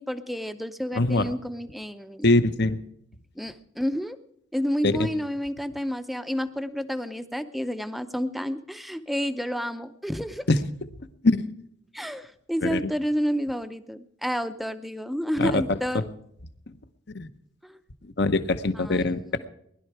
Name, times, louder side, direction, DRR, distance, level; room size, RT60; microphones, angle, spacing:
voice 1, 0.0-2.3 3.4-4.2 4.5-10.5 11.9-16.0 17.6-17.8 18.7-19.4, equal, ahead, 11 dB, 0.6 m, -30 dB
voice 2, 0.9-1.2 2.2-2.8 4.8-5.1 10.5-10.6 11.2-11.5 12.6-12.9 15.4-15.6 17.1-17.3 18.2-19.2, left 2 dB, 55° left, 11 dB, 0.9 m, -22 dB
20.0 x 11.5 x 4.7 m, 0.71 s
head